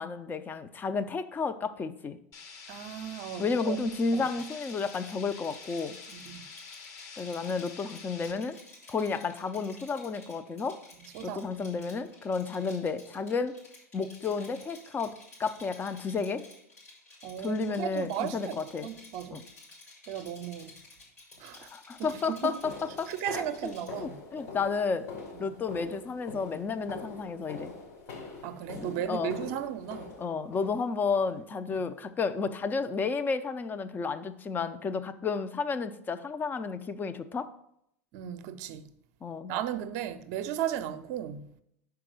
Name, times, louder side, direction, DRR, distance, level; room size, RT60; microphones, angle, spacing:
voice 1, 0.0-2.2 3.4-6.0 7.2-8.6 8.9-10.7 11.2-13.5 13.9-15.1 15.4-16.4 17.4-18.9 19.3-19.4 21.7-23.7 24.0-25.1 25.4-27.7 28.7-29.4 30.2-37.5 39.2-39.5, left 4 dB, 25° left, 0.6 m, -32 dB
sound 1, 2.3-8.3, left 5 dB, 40° left, 1.1 m, -47 dB
voice 2, 2.7-3.8 4.1-4.3 6.1-6.4 11.1-11.7 17.2-19.4 20.1-20.8 21.4-21.7 22.0-22.5 23.1-24.2 25.3-25.5 28.4-30.1 38.1-38.9 39.5-41.5, right 10 dB, 55° right, 0.6 m, -36 dB
Rattle, 4.2-23.9, left 2 dB, 85° left, 3.2 m, -53 dB
sound 2, 21.3-21.5 22.0-31.2 31.7-32.1 32.3-32.5 32.9-33.1 33.5-33.6 34.1-34.2, left 4 dB, 65° left, 2.7 m, -45 dB
5.9 x 4.7 x 6.4 m
hypercardioid pair, 90°, 8 cm